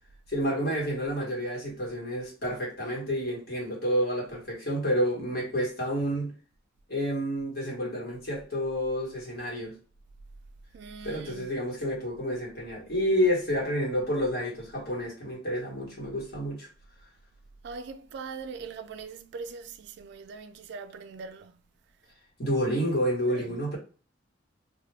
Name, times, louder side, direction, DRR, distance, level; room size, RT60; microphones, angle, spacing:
voice 1, 0.3-6.3 6.9-9.7 11.0-16.7 22.4-23.8, equal, 55° left, 1.2 m, -29 dB
voice 2, 10.7-11.5 17.6-21.6 23.3-23.7, right 5 dB, 60° right, 0.3 m, -41 dB
2.3 x 2.1 x 3.2 m
head